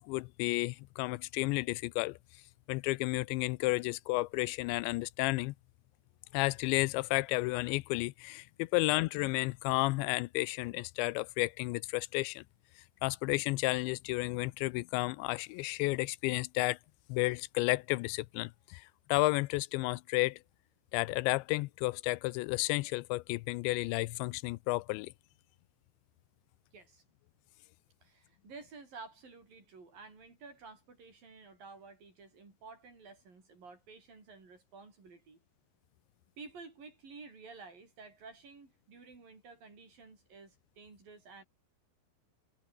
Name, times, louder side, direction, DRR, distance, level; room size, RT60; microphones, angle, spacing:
voice 1, 0.0-2.2 2.7-5.5 6.3-12.4 13.0-16.8 17.1-20.4 20.9-25.1, left 22 dB, 90° left, 2.9 m, -32 dB
voice 2, 26.7-27.0 28.0-35.4 36.4-41.4, right 4 dB, 50° right, 8.3 m, -52 dB
omnidirectional pair, 5.1 m